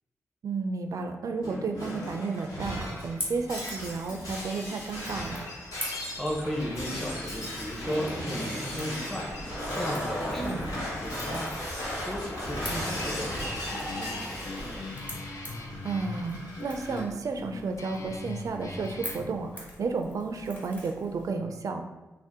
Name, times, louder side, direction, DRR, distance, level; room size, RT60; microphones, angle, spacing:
voice 1, 0.4-5.4 10.4-10.7 15.8-16.3 16.6-21.8, right 4 dB, 60° right, 5 dB, 0.3 m, -32 dB
Shatter, 1.4-17.0, left 1 dB, 75° left, 1.1 m, -36 dB
Crackle / Crack, 3.0-21.3, left 1 dB, 25° left, 1.2 m, -45 dB
voice 2, 5.8-14.6, equal, 5° left, -3 dB, 0.7 m, -36 dB
Guitar, 13.5-19.3, left 3 dB, 60° left, 0.4 m, -41 dB
2.7 x 2.1 x 3.5 m, 1.1 s
cardioid pair, 50°, 6 cm